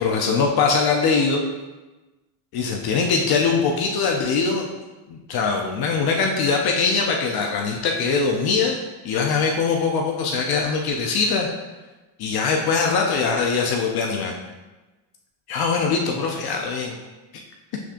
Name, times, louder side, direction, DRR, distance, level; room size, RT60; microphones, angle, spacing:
voice 1, 0.0-1.4 2.5-4.7 5.1-8.8 9.0-11.5 12.2-14.3 15.5-17.0, left 5 dB, 50° left, 1 dB, 0.6 m, -22 dB
6.1 x 3.4 x 2.5 m, 1.2 s
supercardioid pair, 105°, 50 cm